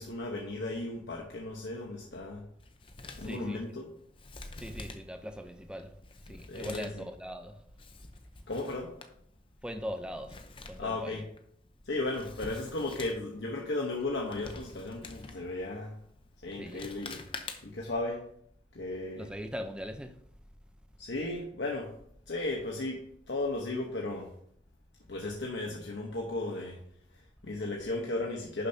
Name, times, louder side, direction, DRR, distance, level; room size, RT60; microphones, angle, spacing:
voice 1, 0.0-2.4 3.2-3.9 6.3-7.0 8.5-8.9 10.8-11.2 11.8-16.0 16.4-17.2 17.6-18.2 18.7-19.3 21.0-21.9 22.3-24.3 25.1-26.8 27.1-28.7, left 2 dB, 80° left, 1.1 m, -35 dB
Male speech man speaking, 2.6-17.9, left 3 dB, 30° left, 0.7 m, -48 dB
voice 2, 3.2-3.6 4.6-6.0 6.2-7.6 9.6-11.2 16.6-16.9 19.2-20.2, equal, 5° right, 0.6 m, -41 dB
11.0 x 6.7 x 2.8 m
head